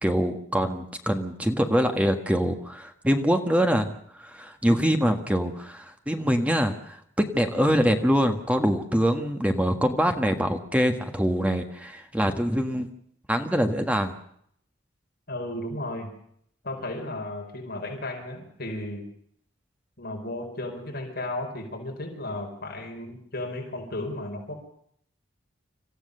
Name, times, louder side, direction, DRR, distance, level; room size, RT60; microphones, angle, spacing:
voice 1, 0.0-12.9 13.3-14.2, equal, 5° right, 6 dB, 1.6 m, -24 dB
voice 2, 15.3-16.1 16.6-19.0 20.0-24.5, left 1 dB, 55° left, 2 dB, 4.7 m, -34 dB
27.0 x 15.0 x 6.8 m, 0.68 s
head